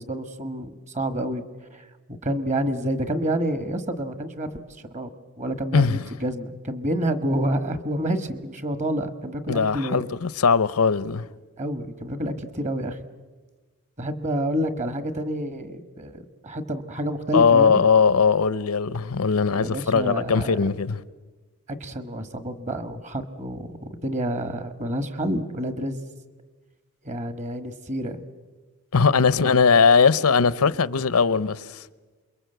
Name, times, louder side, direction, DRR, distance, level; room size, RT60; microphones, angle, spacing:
voice 1, 0.0-1.4 1.7-1.9 2.2-5.1 5.4-10.1 11.6-13.0 14.0-17.8 19.6-20.6 21.8-26.0 27.0-28.2 29.4-29.5, right 1 dB, 30° right, 1.5 m, -28 dB
voice 2, 9.5-11.3 17.3-21.0 28.9-31.7, left 5 dB, 80° left, 0.7 m, -19 dB
28.0 x 22.5 x 8.0 m
head